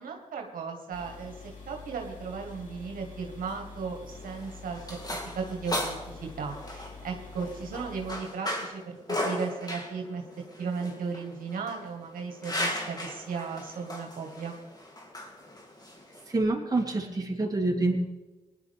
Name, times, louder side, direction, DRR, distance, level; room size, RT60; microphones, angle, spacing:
voice 1, 0.0-1.4 1.7-10.2 10.6-14.6, right 5 dB, 75° right, 2 dB, 1.8 m, -36 dB
sound 1, 0.9-8.2, left 5 dB, 65° left, 3.1 m, -46 dB
sound 2, 4.1-16.4, left 1 dB, 25° left, 3.0 m, -37 dB
voice 2, 16.3-18.0, right 2 dB, 25° right, -1 dB, 3.2 m, -27 dB
19.0 x 11.5 x 3.6 m, 1.2 s
supercardioid pair, 45°, 14 cm